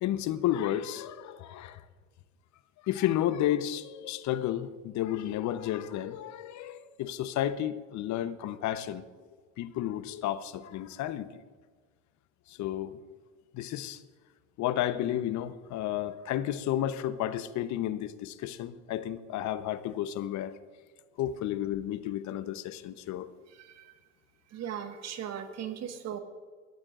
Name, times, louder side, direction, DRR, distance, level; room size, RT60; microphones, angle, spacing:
voice 1, 0.0-1.8 2.8-9.0 9.6-11.3 12.5-13.0 13.5-14.0 14.6-20.6 21.2-23.3, left 12 dB, 50° left, 1.0 m, -32 dB
voice 2, 23.6-23.9 24.5-26.2, right 9 dB, 45° right, 1.6 m, -38 dB
22.0 x 13.5 x 2.5 m
hypercardioid pair, 80°, 36 cm